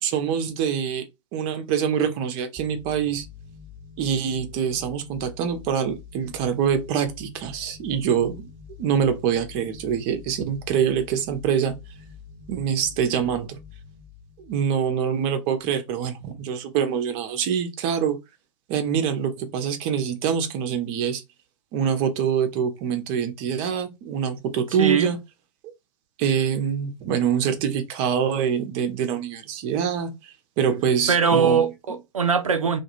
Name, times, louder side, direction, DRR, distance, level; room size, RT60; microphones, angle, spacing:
voice 1, 0.0-1.1 1.3-3.3 4.0-8.5 8.8-11.8 12.5-13.6 14.4-18.2 18.7-21.2 21.7-25.2 26.2-31.7, right 8 dB, 35° right, 0.6 m, -25 dB
sound 1, 2.6-15.7, left 6 dB, 5° right, 1.0 m, -46 dB
voice 2, 24.8-25.1 31.1-32.8, right 6 dB, 80° right, 0.5 m, -21 dB
2.3 x 2.2 x 2.9 m
figure-of-eight pair, 105°, 17 cm